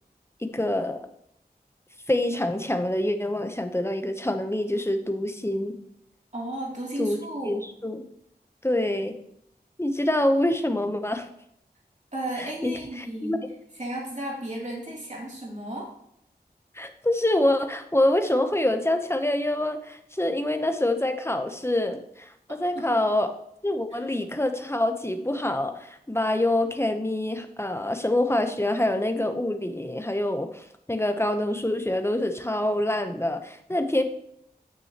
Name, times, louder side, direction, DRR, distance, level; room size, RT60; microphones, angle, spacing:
voice 1, 0.4-1.1 2.1-5.7 7.0-7.2 7.4-8.0 8.6-9.1 9.8-11.3 12.4-13.4 16.7-23.3 23.6-34.0, left 1 dB, 15° left, 7 dB, 0.8 m, -26 dB
voice 2, 6.3-7.6 12.1-13.4 13.8-15.9 22.7-23.0 23.9-24.0, right 1 dB, 45° right, -4 dB, 2.9 m, -34 dB
9.4 x 6.2 x 3.0 m, 0.73 s
wide cardioid pair, 45°, 17 cm